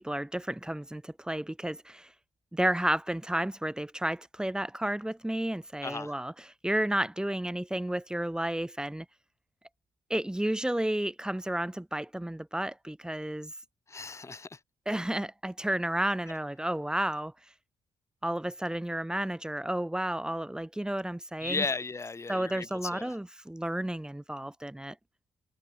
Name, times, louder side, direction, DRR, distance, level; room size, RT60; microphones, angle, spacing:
voice 1, 0.0-2.1 2.5-6.3 6.6-9.1 10.1-13.5 14.9-17.3 18.2-21.6 22.3-24.9, right 1 dB, 5° right, 0.9 m, -32 dB
voice 2, 5.8-6.1 13.9-14.6 21.4-23.1, left 4 dB, 25° left, 1.3 m, -35 dB
cardioid pair, 75°, 11 cm